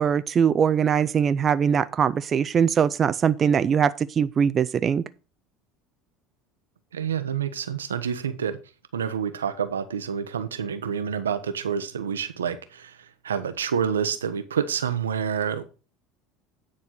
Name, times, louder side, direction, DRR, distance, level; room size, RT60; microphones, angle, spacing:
voice 1, 0.0-5.0, right 7 dB, 35° right, 0.5 m, -21 dB
voice 2, 6.9-8.6 8.9-15.6, right 7 dB, 85° right, 0.9 m, -28 dB
9.7 x 4.3 x 6.4 m
hypercardioid pair, 75°, 0 cm